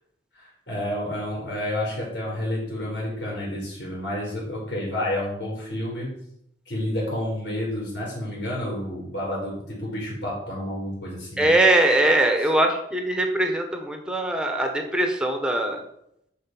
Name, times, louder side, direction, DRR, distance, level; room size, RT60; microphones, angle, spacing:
voice 1, 0.3-6.1 6.7-11.5, left 1 dB, 65° left, -4 dB, 4.5 m, -30 dB
voice 2, 11.4-15.8, right 1 dB, 5° right, 4 dB, 1.5 m, -21 dB
12.0 x 4.7 x 6.2 m, 0.75 s
head